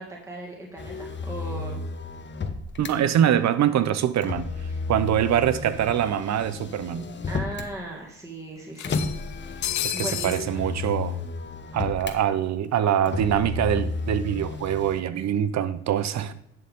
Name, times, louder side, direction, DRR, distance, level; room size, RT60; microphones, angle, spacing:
voice 1, 0.0-1.8 4.7-4.8 7.3-9.0 9.9-10.6, right 1 dB, 10° right, 2.1 m, -37 dB
Motor vehicle (road), 0.8-2.9 4.2-7.7 8.8-12.2 13.1-15.0, left 4 dB, 35° left, 1.1 m, -33 dB
voice 2, 2.8-4.5 4.9-7.1 9.8-11.2 11.7-16.3, right 10 dB, 65° right, 0.8 m, -24 dB
sound 1, 5.7-5.8 6.9-7.0 7.4-7.5 8.8-10.5, left 12 dB, 70° left, 0.6 m, -31 dB
10.5 x 6.8 x 3.7 m
cardioid pair, 90°, 30 cm